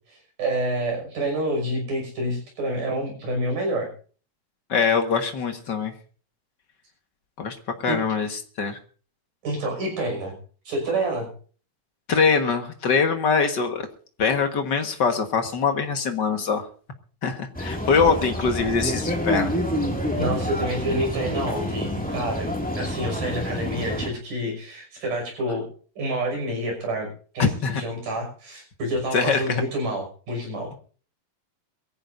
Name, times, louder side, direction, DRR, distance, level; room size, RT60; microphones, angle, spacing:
voice 1, 0.1-3.9 7.9-8.0 9.4-10.4 10.7-11.3 20.2-25.7 26.0-30.8, right 1 dB, 65° right, 2 dB, 7.6 m, -28 dB
voice 2, 4.7-5.9 7.4-8.8 12.1-13.9 14.2-16.6 17.2-19.5 27.4-27.8 29.1-29.6, left 5 dB, 45° left, 5 dB, 1.4 m, -23 dB
sound 1, 17.5-24.1, equal, 5° left, 1.3 m, -28 dB
23.0 x 15.5 x 2.7 m, 0.41 s
omnidirectional pair, 4.1 m